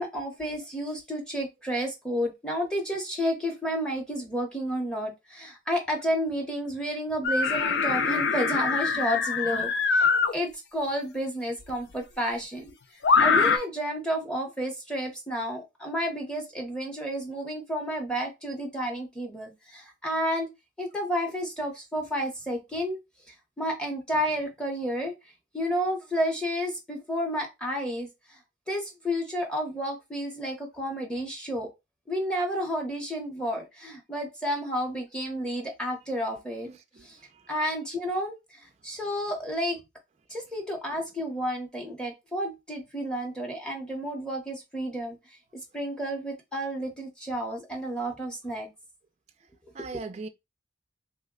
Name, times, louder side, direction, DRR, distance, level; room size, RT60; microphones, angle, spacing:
voice 1, 0.0-12.7 13.2-20.5 20.8-23.0 23.3-25.1 25.5-28.4 28.7-31.7 32.1-36.7 37.0-37.2 37.5-39.8 40.3-45.2 45.7-48.7 49.8-50.1, equal, 5° left, 0.8 m, -31 dB
sound 1, 7.2-10.3 11.7-11.8 13.0-13.6, left 5 dB, 60° left, 0.4 m, -23 dB
voice 2, 36.7-37.0 49.8-50.3, right 3 dB, 35° right, 0.3 m, -39 dB
3.0 x 2.1 x 3.6 m
head